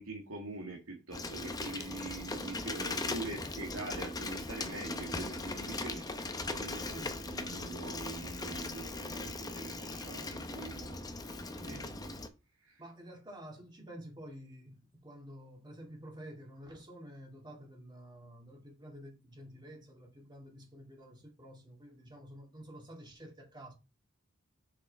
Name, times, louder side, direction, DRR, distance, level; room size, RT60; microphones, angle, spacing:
voice 1, 0.0-11.1 11.6-11.9 12.6-12.8, right 2 dB, 90° right, 1.9 m, -44 dB
Bicycle, 1.1-12.3, left 2 dB, 20° left, 0.7 m, -39 dB
voice 2, 12.8-23.7, equal, 20° right, 2.1 m, -50 dB
6.5 x 6.0 x 3.4 m
head